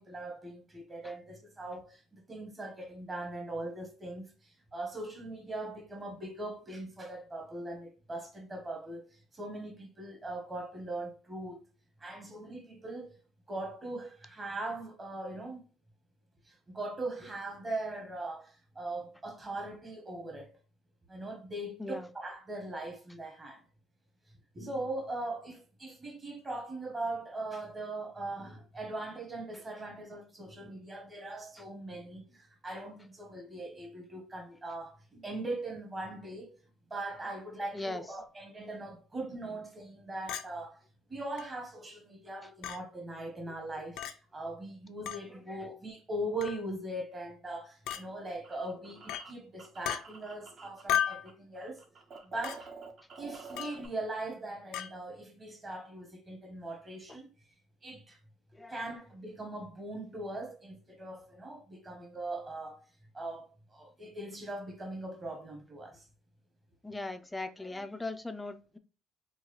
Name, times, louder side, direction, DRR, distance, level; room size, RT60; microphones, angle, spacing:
voice 1, 0.0-11.6 12.0-13.2 13.5-15.6 16.4-20.5 21.1-23.6 24.5-36.5 36.9-40.8 41.1-51.8 52.2-52.7 53.2-57.3 57.8-58.2 58.7-62.8 63.1-66.0, right 2 dB, 25° right, 1.2 m, -40 dB
Chink clink, 40.3-40.5 41.4-41.5 42.6-42.8 44.0-44.1 45.1-45.2 46.4-46.6 47.9-48.0 49.1-49.3 49.8-50.0 50.9-51.2 52.4-52.6 53.6-53.8 54.7-54.9, left 10 dB, 75° left, 0.4 m, -33 dB
sound 1, 47.9-51.3 51.6-53.9, right 4 dB, 45° right, 0.8 m, -49 dB
voice 2, 66.8-68.8, left 2 dB, 10° left, 0.4 m, -39 dB
3.9 x 2.3 x 3.1 m
cardioid pair, 115°, 0 cm